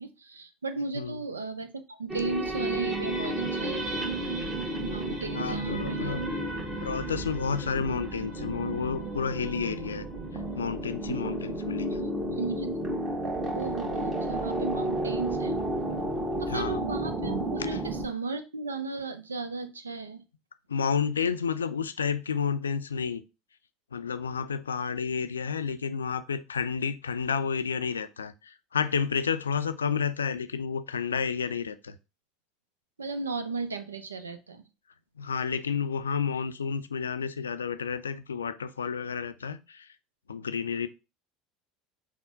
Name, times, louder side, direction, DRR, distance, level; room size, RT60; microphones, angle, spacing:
voice 1, 0.0-4.1 4.8-6.2 12.0-12.8 13.5-15.6 16.4-20.2 33.0-34.6, right 4 dB, 85° right, 0.5 m, -35 dB
sound 1, 2.1-18.1, right 1 dB, 30° right, 1.3 m, -32 dB
voice 2, 5.3-6.3 6.8-10.1 10.5-12.4 16.5-16.8 17.7-17.8 20.7-23.2 23.9-32.0 35.2-39.9 40.3-40.9, left 6 dB, 80° left, 0.3 m, -31 dB
5.9 x 2.1 x 3.7 m
figure-of-eight pair, 70°, 0 cm